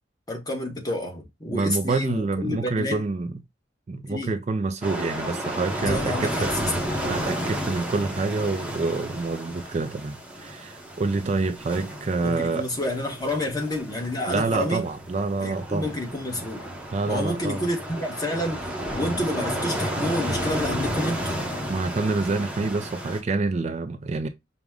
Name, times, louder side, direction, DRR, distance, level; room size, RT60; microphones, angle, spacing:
voice 1, 0.3-3.0 4.0-4.3 5.8-6.7 12.2-14.9 15.4-16.7 17.1-21.4, left 1 dB, 20° left, 1.0 m, -29 dB
voice 2, 1.5-3.4 3.9-6.5 7.0-12.7 14.3-15.9 16.9-17.6 21.7-24.3, right 3 dB, 35° right, 0.4 m, -27 dB
sound 1, 4.8-23.2, equal, 5° right, 0.7 m, -32 dB
4.8 x 2.1 x 3.5 m
head